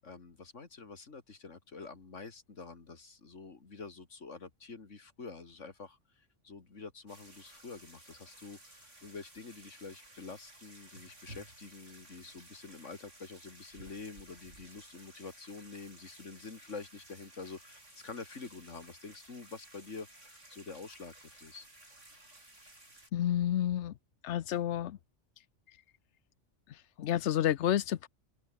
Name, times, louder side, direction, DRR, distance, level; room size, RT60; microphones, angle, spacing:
voice 1, 0.0-21.7, left 4 dB, 90° left, 2.7 m, -47 dB
sound 1, 7.1-23.1, right 1 dB, 80° right, 8.5 m, -56 dB
voice 2, 23.1-23.9 24.2-25.0 27.0-28.1, left 11 dB, 75° left, 1.0 m, -30 dB
omnidirectional pair, 1.2 m